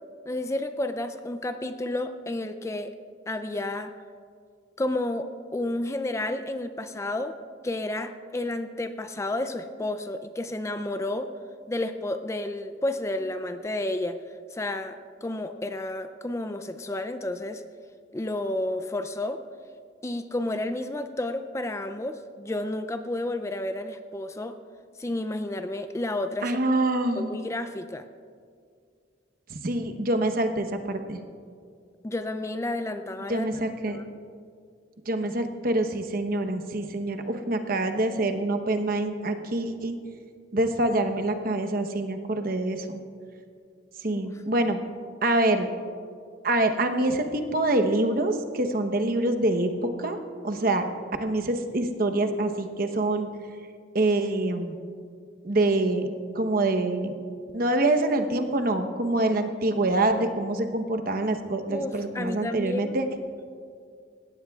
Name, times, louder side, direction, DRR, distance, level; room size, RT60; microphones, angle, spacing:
voice 1, 0.3-2.9 3.3-3.9 4.8-7.3 7.6-11.3 11.7-14.2 14.5-17.6 18.1-19.4 20.0-24.6 25.0-26.6 27.2-28.1 32.0-33.5 33.9-34.0 44.1-44.3 61.7-62.9, left 1 dB, 15° left, 9 dB, 0.4 m, -31 dB
voice 2, 26.4-27.4 29.5-31.2 33.3-34.0 35.1-40.0 40.5-43.0 44.0-44.8 45.2-45.7 46.4-50.2 50.4-50.9 51.2-53.3 53.9-54.7 55.4-56.1 56.3-57.1 57.5-63.1, right 2 dB, 50° right, 7 dB, 1.0 m, -25 dB
20.0 x 16.5 x 2.4 m, 2.2 s
head